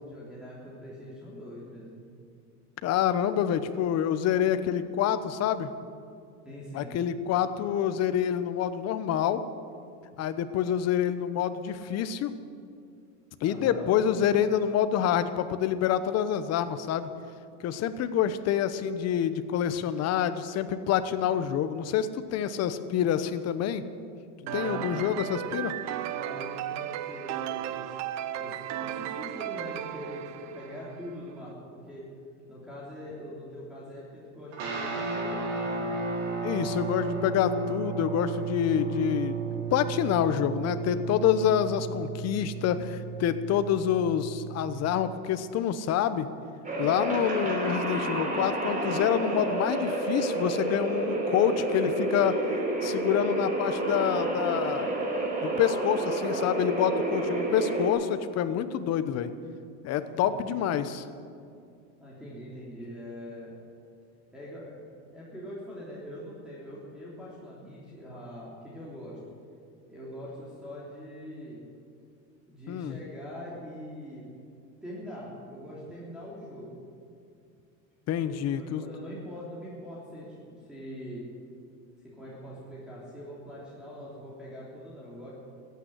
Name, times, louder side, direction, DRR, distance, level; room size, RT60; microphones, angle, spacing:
voice 1, 0.1-2.0 6.4-7.0 13.5-13.9 24.3-25.3 26.1-27.9 28.4-32.1 32.5-35.8 60.1-60.5 62.0-63.6 64.3-64.8 65.1-69.2 69.9-71.6 72.5-74.3 74.8-76.8 78.0-81.2 82.0-85.3, equal, ahead, -7 dB, 3.4 m, -43 dB
voice 2, 2.8-5.7 6.7-9.4 10.2-12.3 13.4-17.1 17.6-23.8 24.5-25.7 36.4-39.3 39.7-46.3 46.8-52.4 52.8-54.9 55.4-59.3 59.8-61.0 72.7-73.0 78.1-78.8, left 9 dB, 40° left, 11 dB, 1.0 m, -27 dB
sound 1, 24.5-31.1, right 11 dB, 45° right, 0.8 m, -35 dB
sound 2, 34.5-45.0, right 4 dB, 75° right, 4.3 m, -34 dB
sound 3, 46.6-57.9, right 2 dB, 20° right, 3.5 m, -29 dB
14.5 x 9.4 x 10.0 m, 2.4 s
supercardioid pair, 130°, 38 cm